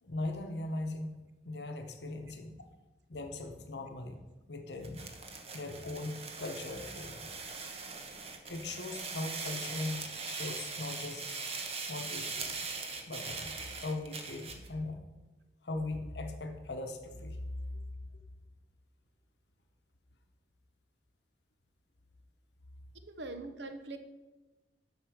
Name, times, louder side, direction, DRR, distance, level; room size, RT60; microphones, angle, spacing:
voice 1, 0.0-2.6 3.1-4.2 4.5-5.1 5.5-7.3 8.5-11.3 11.9-12.5 13.1-13.5 13.8-15.0 15.6-17.4, left 2 dB, 70° left, 5 dB, 0.9 m, -39 dB
sound 1, 4.8-14.7, right 4 dB, 35° right, 1.0 m, -41 dB
voice 2, 23.0-24.0, right 2 dB, 80° right, 8 dB, 0.8 m, -42 dB
8.1 x 5.6 x 6.2 m, 1.1 s
head